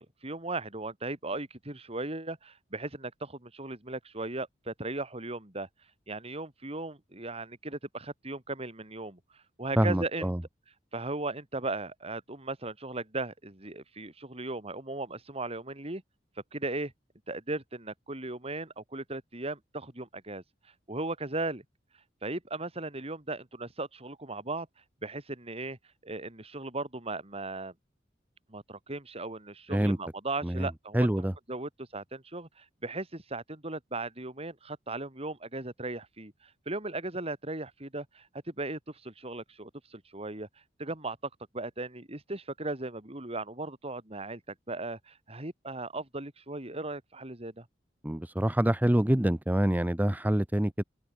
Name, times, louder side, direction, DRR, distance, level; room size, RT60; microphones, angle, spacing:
voice 1, 0.0-5.7 6.1-9.2 9.6-10.3 10.9-16.0 16.5-16.9 17.3-20.4 20.9-21.6 22.2-24.7 25.0-25.8 26.0-27.7 28.5-40.5 40.8-41.2 41.5-44.4 44.7-47.7, right 2 dB, 35° right, 4.0 m, -37 dB
voice 2, 9.8-10.4 29.7-30.0 30.4-30.7 30.9-31.3 48.0-50.8, right 1 dB, 10° right, 0.7 m, -26 dB
head